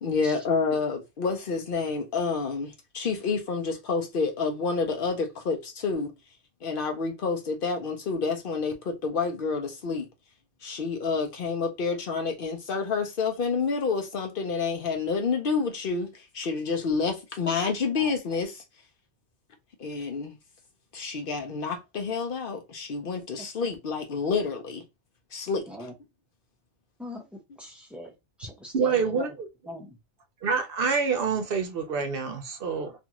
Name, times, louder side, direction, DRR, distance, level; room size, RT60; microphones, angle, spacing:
voice 1, 0.0-6.1 6.6-10.1 10.6-18.6 19.8-20.4 20.9-24.8 25.3-25.9, left 4 dB, 60° left, 0.7 m, -29 dB
voice 2, 27.0-28.1 28.4-29.3 29.7-30.0, equal, ahead, 0.4 m, -41 dB
voice 3, 28.7-29.5 30.4-32.9, right 5 dB, 60° right, 0.7 m, -27 dB
2.6 x 2.4 x 2.8 m
omnidirectional pair, 1.2 m